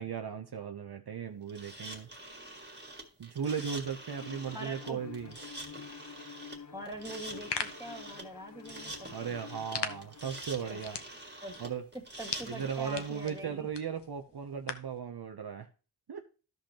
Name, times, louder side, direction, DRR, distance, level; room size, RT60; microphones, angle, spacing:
voice 1, 0.0-2.1 3.2-5.3 9.1-11.0 11.6-11.8 12.5-15.7 16.1-16.2, right 7 dB, 60° right, 5 dB, 0.7 m, -37 dB
sound 1, 1.5-13.4, right 1 dB, 25° right, 1.8 m, -46 dB
Bowed string instrument, 4.1-10.6, left 6 dB, 40° left, 0.8 m, -50 dB
voice 2, 4.5-5.0 6.7-9.3 10.7-10.8 11.4-11.6 11.9-13.7, right 1 dB, 10° right, 4 dB, 2.1 m, -44 dB
sound 2, 7.2-15.0, left 6 dB, 70° left, 0.9 m, -43 dB
13.5 x 5.3 x 2.9 m, 0.34 s
wide cardioid pair, 55°, 43 cm